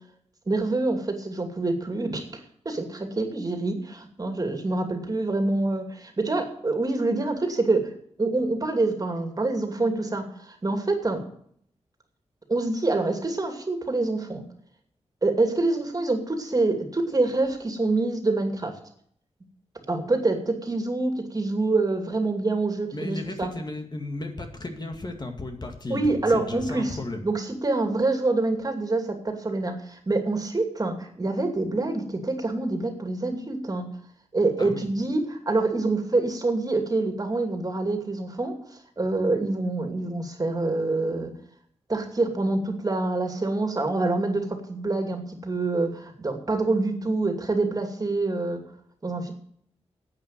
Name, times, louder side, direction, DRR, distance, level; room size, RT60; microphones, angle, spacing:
voice 1, 0.5-2.3 2.6-7.9 8.2-11.2 12.5-14.4 15.2-18.7 19.9-23.5 25.9-27.0 27.2-33.9 34.3-38.6 39.0-41.3 41.9-48.6 49.0-49.3, right 2 dB, 35° right, 5 dB, 2.5 m, -26 dB
voice 2, 22.9-27.2 34.6-34.9, left 2 dB, 40° left, 4 dB, 2.1 m, -34 dB
10.5 x 8.7 x 7.6 m, 0.64 s
wide cardioid pair, 100°, 11 cm